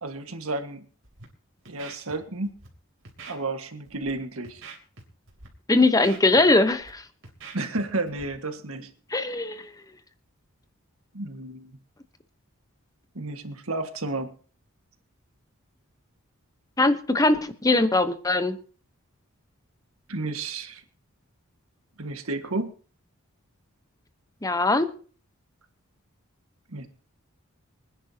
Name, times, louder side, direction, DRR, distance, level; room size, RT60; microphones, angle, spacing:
voice 1, 0.0-0.8 1.7-2.5 3.3-4.6 7.5-8.9 11.1-11.8 13.1-14.3 20.1-20.8 22.0-22.7 26.7-26.9, right 2 dB, 80° right, 7 dB, 1.7 m, -32 dB
Scratching (performance technique), 1.0-1.2 1.7-2.1 2.5-2.7 3.0-3.4 3.9-4.1 4.4-5.0 5.3-5.5 5.8-6.9 7.2-8.3, right 4 dB, 65° right, 3.2 m, -44 dB
voice 2, 5.7-7.0 9.1-9.7 16.8-18.6 24.4-24.9, left 2 dB, 15° left, 10 dB, 1.0 m, -21 dB
25.5 x 10.0 x 2.9 m, 0.41 s
head